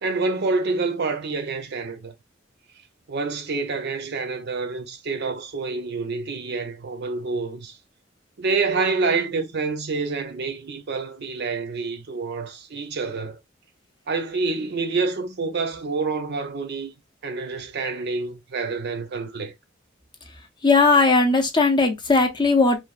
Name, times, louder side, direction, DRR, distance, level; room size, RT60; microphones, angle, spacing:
voice 1, 0.0-2.1 3.1-7.8 8.4-13.4 14.1-16.9 17.2-19.5, right 4 dB, 55° right, 0.6 m, -27 dB
voice 2, 20.6-22.8, left 3 dB, 25° left, 0.5 m, -18 dB
3.2 x 2.2 x 2.3 m
head